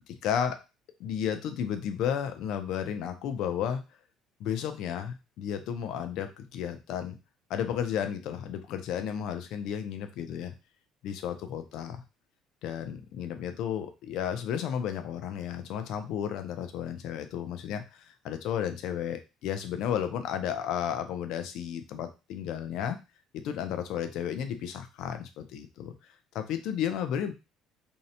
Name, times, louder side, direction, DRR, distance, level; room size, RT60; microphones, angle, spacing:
voice 1, 0.2-0.6 1.0-3.8 4.4-7.1 7.5-10.5 11.0-12.0 12.6-23.0 23.3-25.9 26.3-27.3, left 9 dB, 65° left, 9 dB, 0.4 m, -33 dB
2.6 x 2.1 x 2.7 m, 0.28 s
cardioid pair, 130°, 0 cm